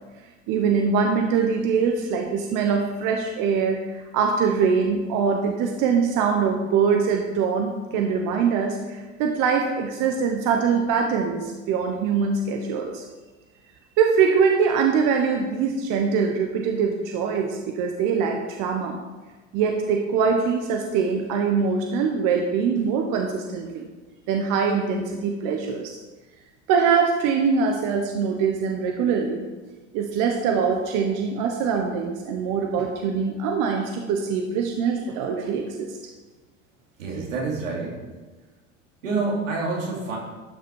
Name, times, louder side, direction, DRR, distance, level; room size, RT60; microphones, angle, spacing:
voice 1, 0.5-13.0 14.0-19.0 19.5-23.9 24.3-26.0 26.7-29.5 29.9-35.9, right 6 dB, 55° right, 3 dB, 1.2 m, -23 dB
voice 2, 37.0-38.0 39.0-40.2, right 3 dB, 90° right, -3 dB, 3.0 m, -27 dB
12.5 x 6.1 x 4.7 m, 1.3 s
hypercardioid pair, 85°, 38 cm